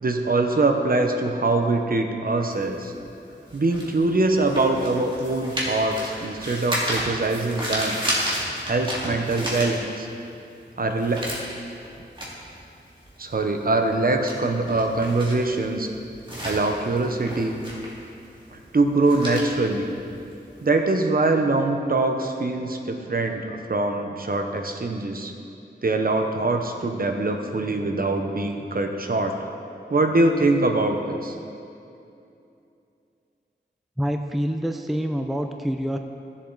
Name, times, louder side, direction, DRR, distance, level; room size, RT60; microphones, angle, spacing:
voice 1, 0.0-2.9 3.5-8.0 8.6-10.1 10.8-11.3 13.2-15.9 16.4-17.6 18.5-19.9 20.6-25.3 25.8-29.3 29.9-31.3, right 2 dB, 50° right, 4 dB, 0.9 m, -23 dB
sound 1, 2.5-10.3 10.6-20.7, equal, 25° right, 2.4 m, -32 dB
voice 2, 34.0-36.0, equal, ahead, 5 dB, 0.4 m, -26 dB
14.5 x 7.3 x 4.0 m, 2.6 s
wide cardioid pair, 90°, 19 cm